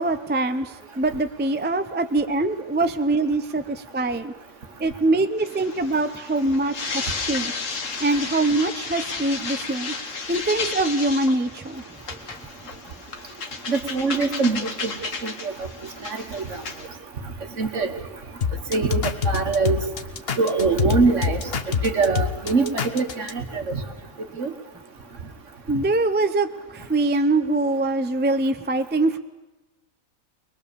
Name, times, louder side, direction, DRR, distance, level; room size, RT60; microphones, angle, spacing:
voice 1, 0.0-4.3 4.8-7.6 8.0-9.9 10.3-11.8 25.7-26.5 26.7-29.2, right 2 dB, 10° right, 9 dB, 0.5 m, -23 dB
sound 1, 5.4-16.9, left 4 dB, 65° left, 1.8 m, -33 dB
voice 2, 13.7-14.9 15.2-15.5 16.0-16.6 17.6-17.9 18.7-19.8 20.4-23.8 24.4-24.5, right 4 dB, 60° right, 6 dB, 1.9 m, -23 dB
sound 2, 18.4-23.3, left 6 dB, 50° left, 1.2 m, -25 dB
22.5 x 21.5 x 6.9 m, 1.1 s
omnidirectional pair, 1.4 m